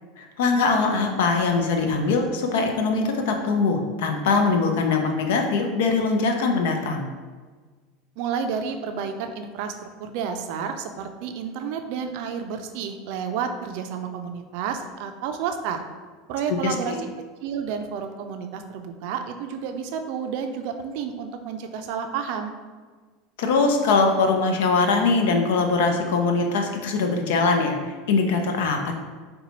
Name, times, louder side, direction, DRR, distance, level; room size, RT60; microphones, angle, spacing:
voice 1, 0.2-7.1 16.6-17.0 23.4-28.9, left 4 dB, 75° left, 4 dB, 0.5 m, -22 dB
voice 2, 8.2-9.7 10.0-15.8 16.3-17.1 17.4-22.5, right 7 dB, 65° right, 6 dB, 0.4 m, -30 dB
4.3 x 2.2 x 4.0 m, 1.4 s
hypercardioid pair, 95°, 0 cm